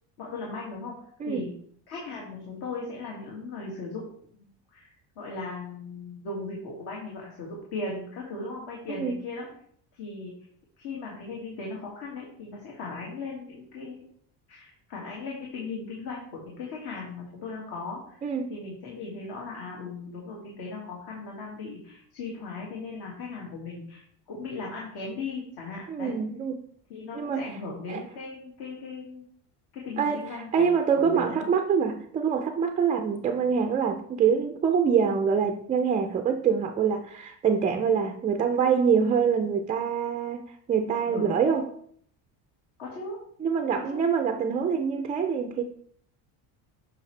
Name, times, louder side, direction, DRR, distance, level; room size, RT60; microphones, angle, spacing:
voice 1, 0.2-1.0 1.2-1.5 1.9-4.1 4.7-9.5 9.9-10.3 10.8-14.0 14.5-26.1 26.9-29.3 29.7-30.7 30.9-31.5 41.1-41.4 42.8-43.2 43.7-44.0, left 3 dB, 65° left, 2.1 m, -38 dB
voice 2, 18.2-18.6 25.9-26.6 27.1-27.5 27.9-28.0 30.0-41.7 43.4-45.6, right 6 dB, 20° right, 0.3 m, -25 dB
8.3 x 5.7 x 3.2 m
cardioid pair, 140°, 42 cm